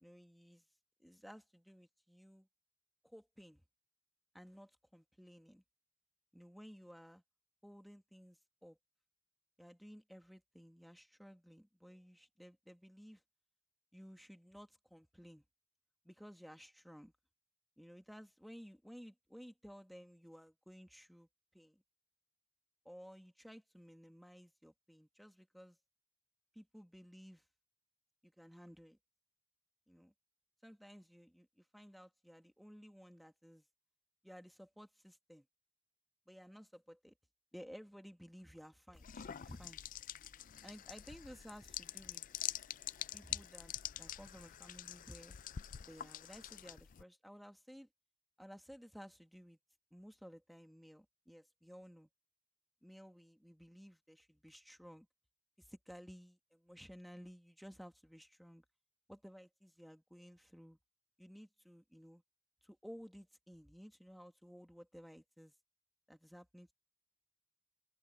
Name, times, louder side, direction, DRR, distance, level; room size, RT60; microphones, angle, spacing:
voice 1, 0.0-0.6 1.0-2.5 3.0-3.6 4.3-5.6 6.3-7.2 7.6-8.8 9.6-13.2 13.9-15.4 16.0-17.1 17.8-21.3 21.5-21.8 22.8-25.8 26.5-27.4 28.2-29.0 29.9-30.1 30.6-33.6 34.2-35.4 36.3-37.1 37.5-39.8 40.6-42.3 43.1-45.3 45.9-47.9 48.4-49.6 49.9-52.1 52.8-55.1 55.6-58.6 59.1-60.8 61.2-62.2 62.6-65.5 66.1-66.7, equal, ahead, 1.4 m, -56 dB
sound 1, 38.9-47.0, left 11 dB, 40° left, 0.4 m, -46 dB
head